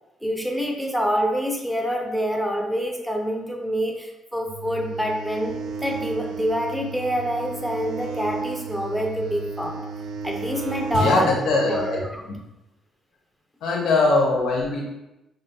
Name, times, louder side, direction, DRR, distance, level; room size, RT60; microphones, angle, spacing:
voice 1, 0.2-9.8 10.2-11.3 11.6-11.9 12.1-12.2, equal, ahead, 0 dB, 0.6 m, -26 dB
sound 1, 4.5-12.1, right 5 dB, 85° right, 0.3 m, -33 dB
voice 2, 10.9-12.0 12.3-12.4 13.6-14.8, left 3 dB, 80° left, -1 dB, 0.9 m, -21 dB
5.3 x 2.5 x 2.3 m, 0.94 s
cardioid pair, 90°, 0 cm